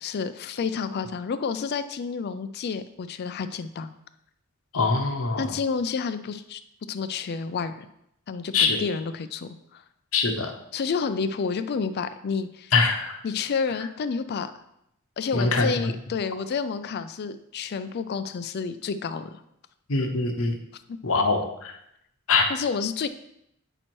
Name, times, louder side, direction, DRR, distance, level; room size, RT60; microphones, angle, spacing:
voice 1, 0.0-3.9 5.4-6.6 6.9-7.9 8.3-9.8 10.7-12.7 13.2-14.5 15.2-19.4 20.9-21.0 22.5-23.1, left 5 dB, 50° left, 11 dB, 0.4 m, -30 dB
voice 2, 4.7-5.5 8.5-8.8 10.1-10.5 12.7-13.2 15.3-15.7 19.9-20.6 21.0-21.8 22.3-22.4, left 4 dB, 75° left, 4 dB, 0.9 m, -23 dB
8.8 x 3.1 x 4.3 m, 0.79 s
head